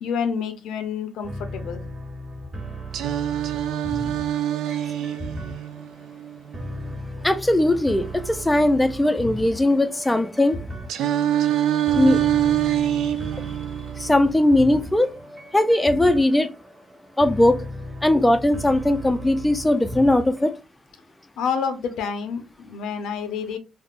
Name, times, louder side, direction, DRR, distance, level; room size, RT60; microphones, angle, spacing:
voice 1, 0.0-1.8 21.4-23.6, left 6 dB, 85° left, 0.6 m, -28 dB
sound 1, 1.2-20.6, right 1 dB, 35° right, 1.0 m, -36 dB
Singing, 2.9-6.9 10.9-14.9, right 11 dB, 85° right, 0.3 m, -25 dB
voice 2, 7.2-10.6 11.8-12.7 13.0-13.1 13.3-13.5 14.0-15.1 15.5-16.5 17.2-17.6 18.0-20.5, left 1 dB, 10° left, 0.3 m, -19 dB
3.5 x 2.0 x 2.4 m
cardioid pair, 90°, 0 cm